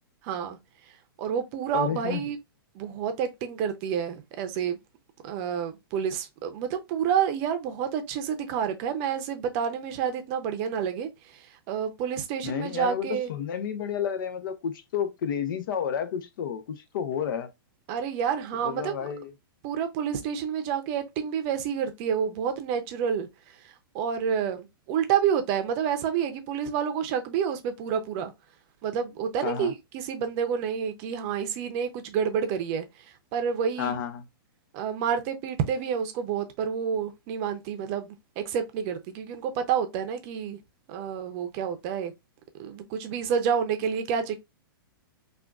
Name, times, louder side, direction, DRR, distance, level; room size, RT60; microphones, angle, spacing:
voice 1, 0.2-0.6 1.2-2.4 2.7-4.8 5.2-13.3 17.9-19.1 19.6-23.3 23.9-28.3 28.8-32.9 33.3-34.0 34.7-40.6 40.9-42.1 42.6-44.3, right 7 dB, 40° right, 0.6 m, -29 dB
voice 2, 1.7-2.2 12.4-17.5 18.6-19.3 29.4-29.7 33.8-34.2, left 8 dB, 60° left, 0.7 m, -31 dB
3.5 x 2.4 x 2.4 m
hypercardioid pair, 135°, 12 cm